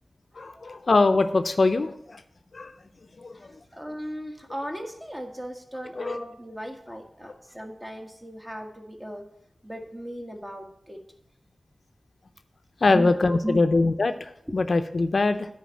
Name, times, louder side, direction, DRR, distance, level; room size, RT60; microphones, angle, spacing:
voice 1, 0.4-2.2 2.5-2.7 3.2-3.5 6.0-6.2 12.8-15.5, left 3 dB, 65° left, 8 dB, 0.6 m, -23 dB
voice 2, 3.3-9.3 9.6-11.0 12.8-13.7 14.5-14.6, equal, 15° right, 3 dB, 1.4 m, -37 dB
10.5 x 4.6 x 7.4 m, 0.74 s
wide cardioid pair, 80°, 0 cm